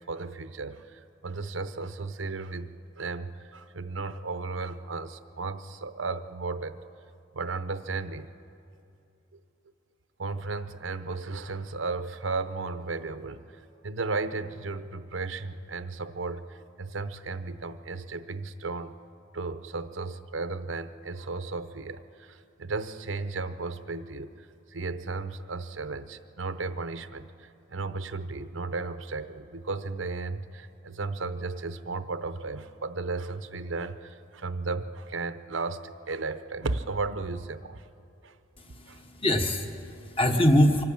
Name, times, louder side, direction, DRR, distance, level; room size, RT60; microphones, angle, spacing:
voice 1, 0.1-6.8 7.3-8.3 10.2-18.9 19.3-37.9 38.2-38.4 38.9-39.0, right 3 dB, 80° right, 11 dB, 0.8 m, -35 dB
voice 2, 38.6-40.8, left 1 dB, 30° left, 5 dB, 1.3 m, -24 dB
25.0 x 12.0 x 8.7 m, 2.6 s
head